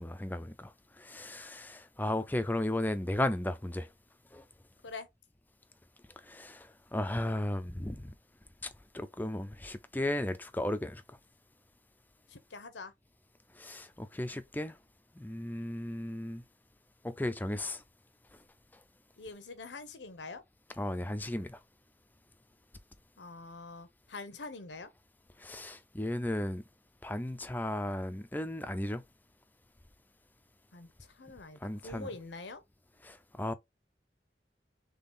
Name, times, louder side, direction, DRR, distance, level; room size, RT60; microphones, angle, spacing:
voice 1, 0.0-3.9 4.3-4.4 6.2-8.1 8.6-11.0 13.6-14.8 15.1-16.4 17.0-17.8 20.8-21.6 25.4-26.6 27.0-29.0 31.6-32.1 33.0-33.5, left 1 dB, 10° left, 0.4 m, -35 dB
voice 2, 12.3-12.9 19.2-20.4 23.2-24.9 30.7-32.6, left 3 dB, 85° left, 0.9 m, -45 dB
3.8 x 3.4 x 3.8 m
head